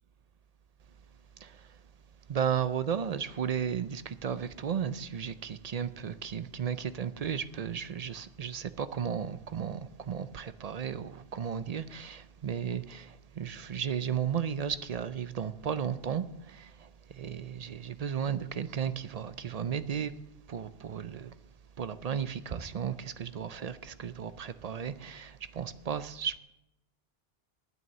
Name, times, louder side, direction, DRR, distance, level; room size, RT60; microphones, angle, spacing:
voice 1, 1.4-1.8 2.3-20.1 20.5-21.4 21.8-26.4, right 8 dB, 50° right, 0.5 m, -34 dB
11.0 x 9.3 x 6.5 m
omnidirectional pair, 1.1 m